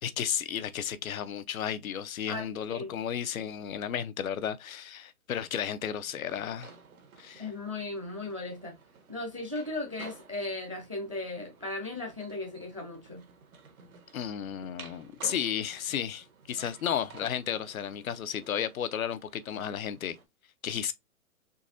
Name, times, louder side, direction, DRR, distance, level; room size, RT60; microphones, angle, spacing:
voice 1, 0.0-6.7 7.2-7.5 14.1-20.2 20.6-20.9, left 9 dB, 70° left, 0.6 m, -33 dB
voice 2, 2.3-3.0 7.4-8.8 9.1-13.2, left 2 dB, 25° right, 0.4 m, -37 dB
sound 1, 5.3-20.2, right 5 dB, 80° right, 1.2 m, -54 dB
3.9 x 2.7 x 2.5 m
hypercardioid pair, 165°, 43 cm